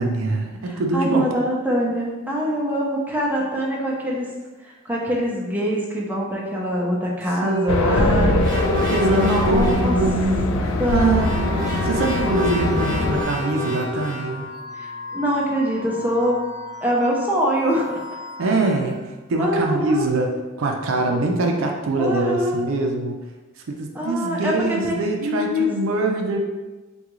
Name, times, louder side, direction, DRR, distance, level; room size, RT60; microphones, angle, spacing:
voice 1, 0.0-1.3 7.4-8.4 8.9-11.4 11.7-14.5 18.4-19.0 19.3-20.3 20.6-23.2 23.7-26.4, right 2 dB, 75° right, 2 dB, 0.4 m, -23 dB
voice 2, 0.6-4.3 4.6-8.4 9.2-10.0 10.8-11.3 14.7-16.4 16.8-18.0 19.4-20.1 22.0-22.6 23.9-25.7, equal, 10° right, -3 dB, 0.5 m, -24 dB
Race car auto racing, 7.7-13.2, left 1 dB, 75° left, 0.3 m, -22 dB
sound 1, 8.4-10.0 10.8-14.4, left 1 dB, 40° right, 0.8 m, -29 dB
sound 2, 11.1-19.1, left 3 dB, 40° left, 0.9 m, -36 dB
3.6 x 2.3 x 2.9 m, 1.2 s
head